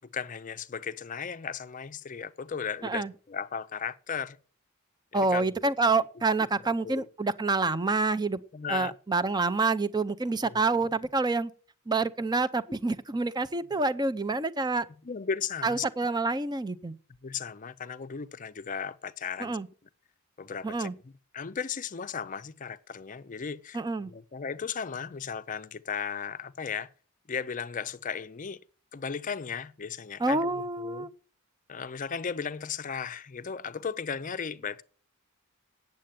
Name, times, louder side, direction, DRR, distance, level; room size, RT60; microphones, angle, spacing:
voice 1, 0.1-4.4 5.1-6.0 6.8-7.1 8.5-8.9 10.4-10.6 15.0-15.8 17.2-19.6 20.4-20.9 21.3-23.8 24.1-26.9 27.3-28.6 28.9-31.1 31.7-34.8, left 6 dB, 35° left, 0.5 m, -36 dB
voice 2, 5.1-8.4 8.7-11.5 11.9-14.9 15.6-16.9 19.4-19.7 20.6-20.9 23.7-24.1 30.2-31.1, right 3 dB, 20° right, 0.5 m, -27 dB
9.0 x 7.6 x 8.8 m
head